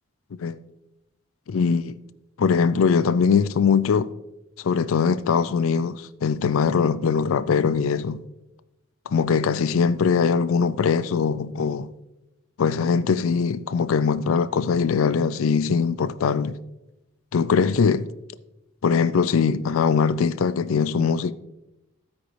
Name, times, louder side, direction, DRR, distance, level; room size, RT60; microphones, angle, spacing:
voice 1, 1.5-2.0 2.4-4.1 4.6-8.2 9.1-11.9 12.6-16.6 17.3-18.1 18.8-21.3, left 6 dB, 70° left, 0.4 m, -21 dB
15.0 x 5.1 x 3.3 m
head